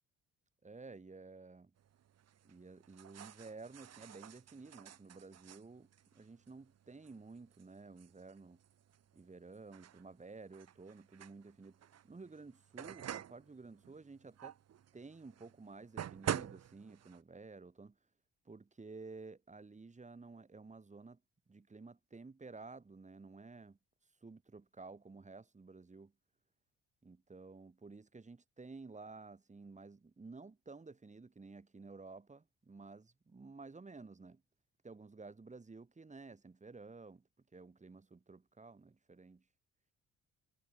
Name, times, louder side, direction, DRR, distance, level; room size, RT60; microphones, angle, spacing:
voice 1, 0.6-1.7 2.4-5.9 6.1-8.6 9.1-14.6 14.9-18.0 18.5-21.2 21.5-23.8 24.2-26.1 27.0-34.4 34.8-39.4, right 3 dB, 25° right, 3.6 m, -53 dB
sound 1, 1.8-17.2, right 10 dB, 55° right, 1.6 m, -48 dB
cardioid pair, 90°, 30 cm